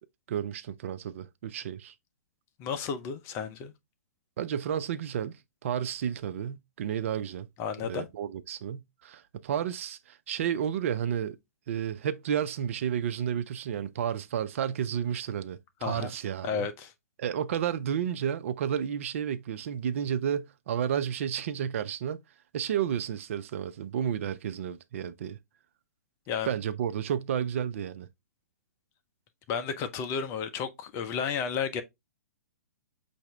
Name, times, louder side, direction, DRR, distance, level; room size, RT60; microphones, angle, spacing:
voice 1, 0.3-1.9 4.4-7.5 7.8-11.4 11.7-16.7 17.2-22.2 22.5-25.4 26.5-28.1, right 9 dB, 55° right, 0.4 m, -31 dB
voice 2, 2.6-3.7 7.6-8.1 15.8-16.1 16.4-16.9 26.3-26.5 29.5-31.8, left 6 dB, 30° left, 0.7 m, -32 dB
5.7 x 2.7 x 3.2 m
figure-of-eight pair, 120°, 9 cm